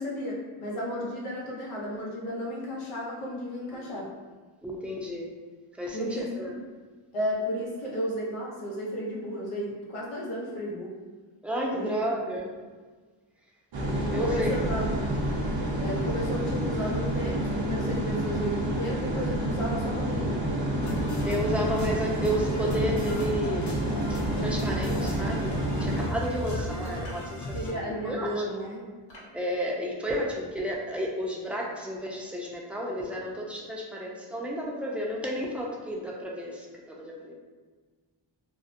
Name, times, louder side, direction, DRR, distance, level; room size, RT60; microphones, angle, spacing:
voice 1, 0.0-4.1 5.9-6.5 7.1-11.0 11.7-12.0 14.0-15.1 15.8-20.4 26.5-26.7 27.5-28.8, equal, 90° left, -3 dB, 0.7 m, -33 dB
voice 2, 4.6-5.3 5.8-6.5 11.4-12.5 14.1-14.8 21.2-23.8 24.1-28.4 29.3-37.3, equal, 5° right, -3 dB, 0.5 m, -32 dB
sound 1, 13.7-26.1, right 1 dB, 65° right, 0.7 m, -29 dB
sound 2, 20.8-27.7, equal, 35° left, 0.7 m, -35 dB
sound 3, 26.8-27.3 28.3-28.5 29.1-29.4, equal, 55° left, 1.0 m, -47 dB
2.7 x 2.0 x 2.5 m, 1.4 s
cardioid pair, 55°, 49 cm